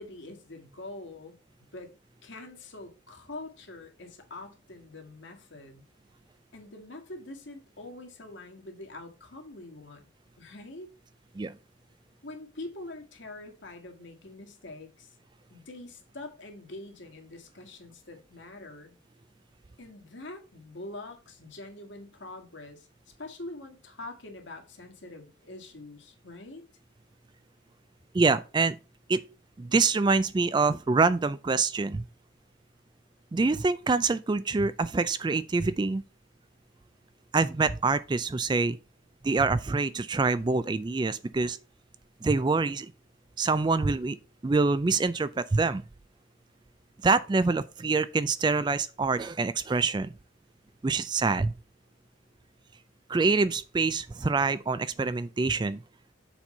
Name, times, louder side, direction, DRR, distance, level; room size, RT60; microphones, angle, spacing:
voice 1, 0.0-1.9 2.2-5.8 6.5-10.1 10.4-10.9 12.2-15.1 15.5-18.9 19.8-26.6, left 2 dB, 65° left, 1.7 m, -44 dB
voice 2, 28.1-28.8 29.1-29.2 29.6-32.0 33.3-36.0 37.3-38.8 39.2-41.6 42.2-42.9 43.4-44.2 44.4-45.8 47.0-50.1 50.8-51.5 53.1-55.8, right 4 dB, 25° right, 0.3 m, -25 dB
7.1 x 4.4 x 5.4 m
head